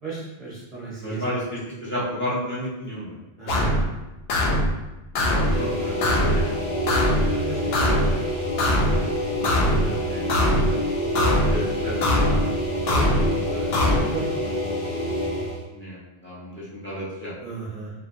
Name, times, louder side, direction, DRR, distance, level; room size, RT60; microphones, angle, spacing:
voice 1, 0.0-1.2 3.4-3.8 7.4-7.9 9.6-10.1 12.9-13.1 14.1-15.1 17.4-17.9, right 4 dB, 40° right, -7 dB, 0.9 m, -35 dB
voice 2, 1.0-3.1 3.4-3.9 5.1-6.7 9.4-10.7 11.5-12.5 13.3-13.7 15.7-17.3, equal, 10° left, -9 dB, 1.3 m, -33 dB
sound 1, 3.5-3.9 4.3-4.7 5.2-5.6 6.0-6.4 6.9-7.3 7.7-8.1 8.6-9.0 9.4-9.9 10.3-10.7 11.2-11.6 12.0-12.4 12.9-13.3 13.7-14.0, left 1 dB, 75° left, 0.9 m, -21 dB
sound 2, 5.2-15.6, equal, 40° left, 1.2 m, -27 dB
4.9 x 2.8 x 2.8 m, 1.0 s
omnidirectional pair, 1.0 m